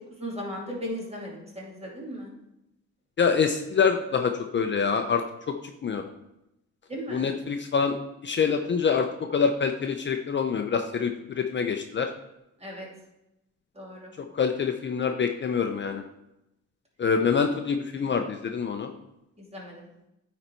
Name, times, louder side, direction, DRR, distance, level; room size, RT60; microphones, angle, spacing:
voice 1, 0.2-2.3 6.9-7.2 12.6-12.9 13.8-14.1 19.5-19.9, equal, 20° right, -2 dB, 2.6 m, -36 dB
voice 2, 3.2-5.6 5.8-6.0 7.1-7.9 8.2-12.1 14.2-16.0 17.0-18.9, left 6 dB, 40° left, 6 dB, 0.6 m, -26 dB
9.7 x 4.1 x 4.4 m, 0.88 s
cardioid pair, 90°, 30 cm